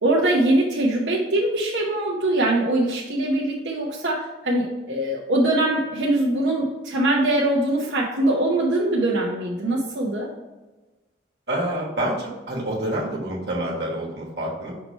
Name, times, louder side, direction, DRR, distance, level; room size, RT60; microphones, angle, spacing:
voice 1, 0.0-10.3, right 1 dB, 85° right, -4 dB, 0.8 m, -22 dB
voice 2, 11.5-14.7, right 1 dB, 65° right, -2 dB, 1.4 m, -27 dB
5.8 x 3.1 x 5.3 m, 1.2 s
head